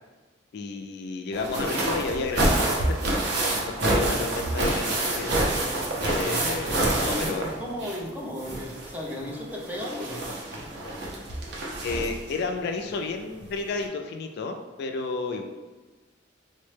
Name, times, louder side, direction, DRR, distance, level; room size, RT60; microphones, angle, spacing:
voice 1, 0.5-3.0 3.7-5.3 6.0-7.5 11.8-15.4, left 4 dB, 60° left, 5 dB, 0.3 m, -32 dB
sound 1, 1.3-8.1 8.4-12.3 13.4-13.5 13.8-13.9, right 1 dB, 60° right, 0.6 m, -27 dB
voice 2, 6.2-10.3, left 1 dB, 10° right, -2 dB, 0.4 m, -35 dB
3.9 x 2.1 x 3.2 m, 1.3 s
head